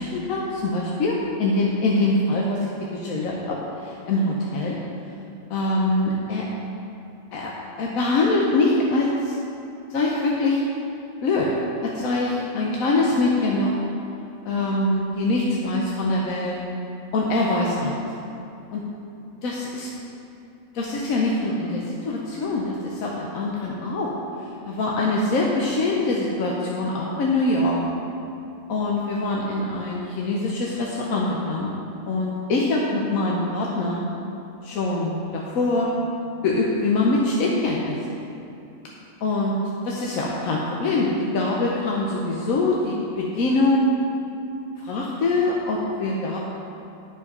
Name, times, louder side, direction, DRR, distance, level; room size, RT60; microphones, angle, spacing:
voice 1, 0.0-4.8 5.5-6.5 7.3-7.5 7.8-9.4 9.9-10.7 11.2-11.5 11.8-13.8 14.4-16.6 17.1-18.1 18.7-18.8 19.4-19.9 20.7-24.1 24.7-27.8 28.7-31.7 32.1-34.0 34.6-35.9 36.4-38.0 39.2-39.6 39.8-43.9 44.8-46.4, left 2 dB, 80° left, -3 dB, 1.3 m, -23 dB
11.5 x 5.1 x 5.4 m, 2.7 s
omnidirectional pair, 1.4 m